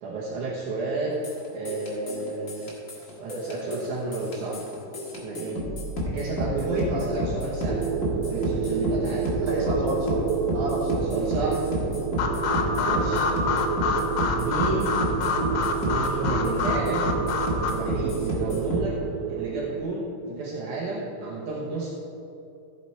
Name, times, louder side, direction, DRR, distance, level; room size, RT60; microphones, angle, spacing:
voice 1, 0.0-1.3 1.5-2.7 3.0-4.6 5.2-5.6 6.0-7.8 8.3-9.3 11.1-11.8 12.8-13.3 14.4-15.1 15.8-17.1 17.7-18.9 19.3-21.9, right 3 dB, 65° right, -4 dB, 2.1 m, -31 dB
sound 1, 1.2-18.9, equal, 50° left, 0.9 m, -31 dB
voice 2, 6.5-7.1 9.3-10.2 10.5-11.0 12.7-13.2 20.2-20.4, right 1 dB, 45° right, -3 dB, 3.1 m, -31 dB
sound 2, 7.7-19.8, right 6 dB, 85° right, 2.6 m, -30 dB
sound 3, 12.2-17.7, left 4 dB, 85° left, 2.9 m, -27 dB
15.0 x 6.5 x 4.5 m, 2.8 s
omnidirectional pair, 4.5 m